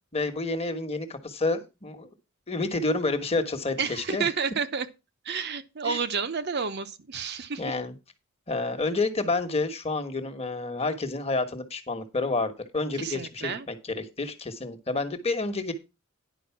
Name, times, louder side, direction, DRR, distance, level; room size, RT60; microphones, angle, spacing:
voice 1, 0.1-2.1 2.5-4.3 5.8-6.0 7.6-7.9 8.5-15.7, left 3 dB, 30° left, 1.3 m, -29 dB
voice 2, 3.8-4.9 5.2-7.7 13.0-13.7, right 5 dB, 50° right, 0.8 m, -30 dB
10.0 x 5.2 x 5.8 m
head